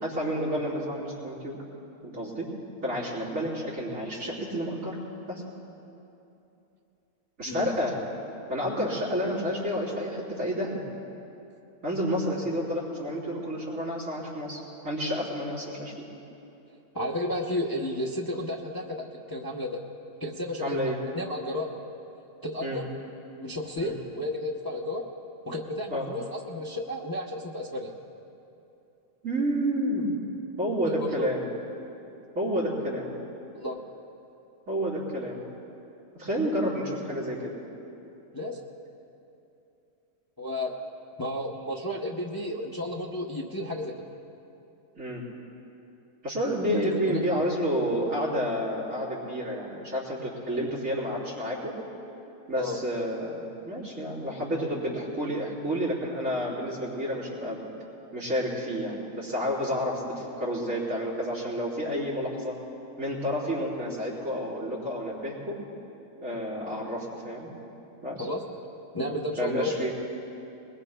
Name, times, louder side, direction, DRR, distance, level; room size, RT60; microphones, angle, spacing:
voice 1, 0.0-1.6 2.0-2.5 2.8-5.0 5.3-5.4 7.4-8.0 8.5-10.8 11.8-16.1 20.6-21.0 22.6-22.8 23.8-23.9 25.9-26.1 29.2-30.1 30.6-31.4 32.4-33.1 34.7-35.4 36.1-37.5 45.0-45.2 46.2-51.8 52.5-53.3 53.7-57.7 58.1-62.6 63.0-65.6 66.2-67.5 68.0-68.3 69.4-69.9, equal, 85° right, -8 dB, 4.0 m, -30 dB
voice 2, 16.9-19.8 20.2-21.8 22.4-22.8 23.4-25.0 25.5-27.9 30.9-31.3 33.5-33.8 38.3-38.6 40.4-40.7 41.2-43.9 46.8-47.2 52.6-52.8 68.2-68.4 68.9-69.9, left 1 dB, 20° left, -2 dB, 0.7 m, -32 dB
22.0 x 21.0 x 2.2 m, 2.9 s
omnidirectional pair, 1.3 m